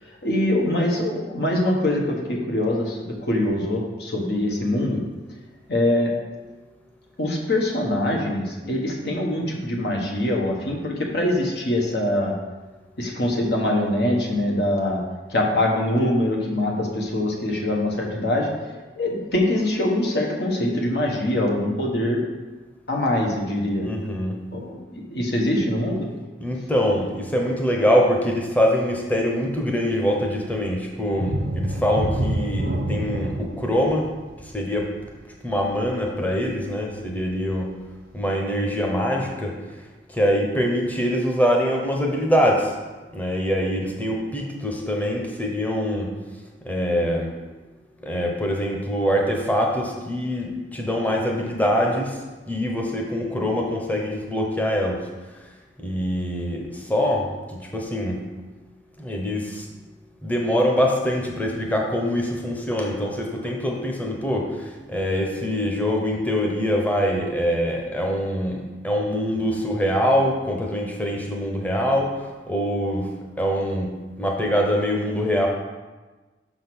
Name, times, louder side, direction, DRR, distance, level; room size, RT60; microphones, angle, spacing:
voice 1, 0.0-5.0 5.7-6.1 7.2-12.3 13.0-15.0 15.3-18.5 19.0-22.2 22.9-23.9 24.5-26.1, left 1 dB, 65° left, 0 dB, 1.3 m, -23 dB
voice 2, 23.8-24.4 26.4-34.1 34.4-34.9 35.4-37.7 38.1-39.6 40.1-42.7 43.1-46.1 46.6-47.3 48.0-52.2 52.5-55.0 55.8-58.2 59.0-59.7 60.2-73.1 73.4-75.5, equal, 10° left, 0 dB, 0.9 m, -24 dB
sound 1, 31.1-36.6 37.0-37.2 37.7-37.8, right 1 dB, 55° right, 0.7 m, -28 dB
6.1 x 3.9 x 6.1 m, 1.3 s
head